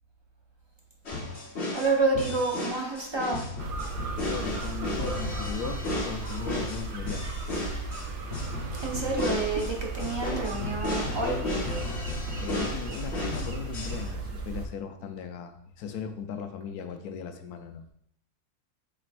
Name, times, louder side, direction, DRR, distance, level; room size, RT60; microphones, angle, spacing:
sound 1, 1.1-14.1, left 2 dB, 45° left, 1.5 m, -34 dB
voice 1, 1.7-3.4 8.8-11.3, right 3 dB, 20° right, -1 dB, 0.9 m, -28 dB
sound 2, 3.6-14.7, right 3 dB, 50° right, 0.6 m, -35 dB
voice 2, 4.3-7.3 12.4-17.9, left 7 dB, 80° left, 7 dB, 1.2 m, -37 dB
7.5 x 5.0 x 2.6 m, 0.69 s
omnidirectional pair, 1.6 m